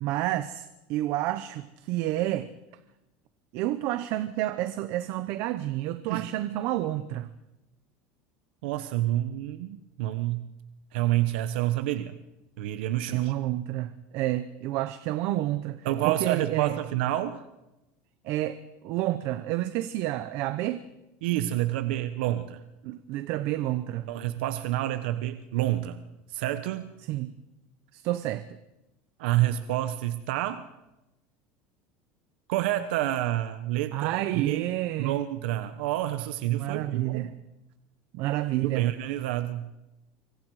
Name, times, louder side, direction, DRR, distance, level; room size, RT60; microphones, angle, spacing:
voice 1, 0.0-2.5 3.5-7.3 13.1-16.8 18.2-18.6 18.8-20.8 22.8-24.1 27.1-27.3 27.9-28.5 33.9-35.2 36.6-37.3 38.1-38.9, right 15 dB, 45° right, 0.8 m, -29 dB
voice 2, 8.6-10.5 10.9-12.1 12.6-13.3 15.8-17.4 21.2-22.6 24.1-26.0 26.3-26.9 29.2-30.6 32.5-34.6 35.0-37.3 38.6-39.7, right 14 dB, 85° right, 1.1 m, -28 dB
25.5 x 24.5 x 4.9 m
cardioid pair, 180°, 6 cm